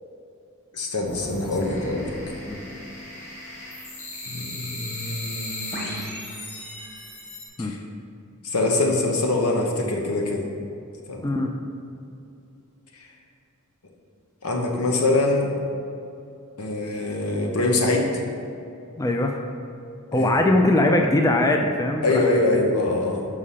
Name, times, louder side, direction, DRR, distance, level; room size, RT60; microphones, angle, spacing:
voice 1, 0.7-2.1 4.3-6.1 7.6-7.8 8.4-10.5 11.1-11.3 12.9-13.1 14.4-15.5 16.6-18.2 20.1-20.3 22.0-23.3, left 2 dB, 85° left, 1 dB, 1.0 m, -24 dB
sound 1, 1.0-7.5, left 1 dB, 35° left, 1.6 m, -36 dB
voice 2, 19.0-19.3 20.1-22.2, left 1 dB, 15° left, 3 dB, 0.3 m, -21 dB
5.5 x 4.9 x 5.6 m, 2.6 s
head